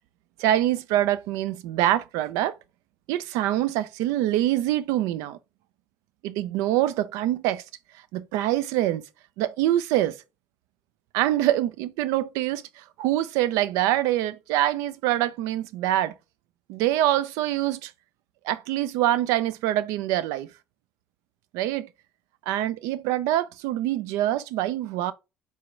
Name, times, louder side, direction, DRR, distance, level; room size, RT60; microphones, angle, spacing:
voice 1, 0.4-2.6 3.1-5.4 6.2-7.6 8.1-9.0 9.4-10.2 11.1-16.1 16.7-17.9 18.4-20.5 21.5-21.9 22.5-25.1, right 13 dB, 80° right, 0.4 m, -25 dB
4.4 x 2.1 x 3.6 m
supercardioid pair, 80°, 5 cm